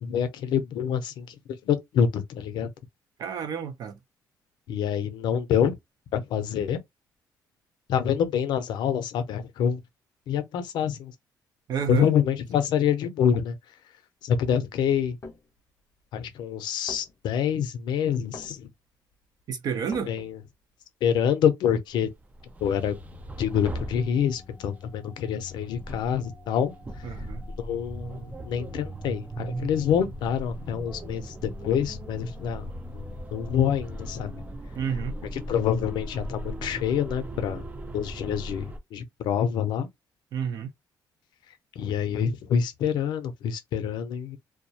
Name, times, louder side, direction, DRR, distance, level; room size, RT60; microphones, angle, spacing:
voice 1, 0.0-1.3 1.6-2.7 4.7-5.8 6.1-6.8 7.9-9.8 10.3-11.1 11.9-13.6 14.2-15.2 16.1-18.7 20.1-20.4 21.0-22.1 22.6-23.0 23.4-26.7 27.6-34.3 35.3-37.6 37.9-39.9 41.8-44.4, left 8 dB, 80° left, 0.5 m, -26 dB
voice 2, 3.2-4.0 11.7-12.1 19.5-20.1 27.0-27.4 34.7-35.1 40.3-40.7, right 7 dB, 60° right, 0.6 m, -30 dB
sound 1, 15.2-15.5 16.2-16.3 16.6-16.7 16.9-17.5 18.1-18.7 19.1-19.2 19.4-20.5, left 3 dB, 35° left, 0.6 m, -44 dB
sound 2, 22.1-24.7 25.4-38.8, right 1 dB, 20° right, 0.3 m, -39 dB
sound 3, 22.5-34.5, left 5 dB, ahead, 0.7 m, -46 dB
2.3 x 2.0 x 2.7 m
cardioid pair, 135°, 8 cm